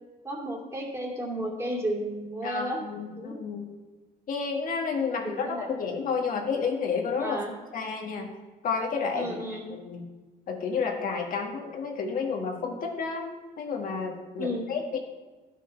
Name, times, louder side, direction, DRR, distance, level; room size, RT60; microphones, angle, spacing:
voice 1, 0.2-2.8 3.2-3.4 5.2-5.7 7.2-7.5 9.1-9.7 14.4-14.7, right 1 dB, 15° right, -1 dB, 2.5 m, -33 dB
voice 2, 2.4-3.7 4.3-7.4 7.7-8.3 8.6-10.0 10.5-13.3 13.6-15.0, left 5 dB, 55° left, 2 dB, 1.6 m, -31 dB
12.0 x 6.4 x 5.7 m, 1.3 s
cardioid pair, 110°, 17 cm